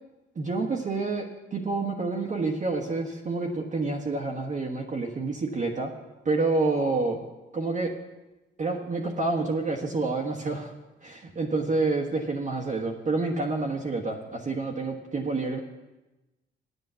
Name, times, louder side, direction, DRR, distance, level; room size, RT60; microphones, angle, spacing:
voice 1, 0.3-5.9 6.2-7.2 7.5-7.9 8.6-10.7 11.0-15.6, right 3 dB, 40° right, -1 dB, 1.3 m, -28 dB
9.5 x 8.2 x 7.4 m, 1.1 s
cardioid pair, 90°, 20 cm